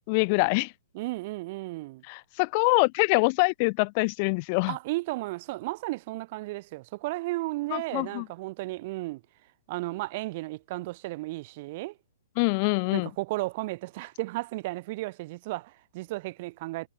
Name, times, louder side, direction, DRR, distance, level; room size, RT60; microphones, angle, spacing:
voice 1, 0.1-0.7 2.1-4.7 7.7-8.2 12.4-13.1, left 31 dB, 40° left, 2.0 m, -24 dB
voice 2, 0.9-2.0 4.7-9.2 9.7-12.0 12.8-16.9, right 20 dB, 45° right, 3.4 m, -34 dB
hypercardioid pair, 145°, 0 cm